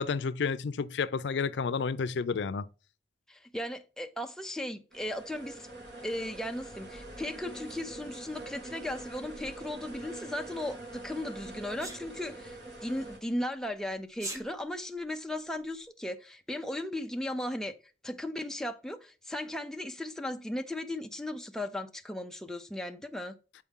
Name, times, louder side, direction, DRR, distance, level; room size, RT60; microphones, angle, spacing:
voice 1, 0.0-2.6, left 5 dB, 85° left, 0.4 m, -30 dB
voice 2, 3.3-5.7 6.0-17.7 18.0-23.4, left 1 dB, 5° left, 0.5 m, -36 dB
sound 1, 4.9-13.2, right 2 dB, 75° right, 3.2 m, -44 dB
Sneeze, 11.8-12.0 14.1-14.4, right 1 dB, 20° right, 1.0 m, -38 dB
8.2 x 4.5 x 3.7 m
head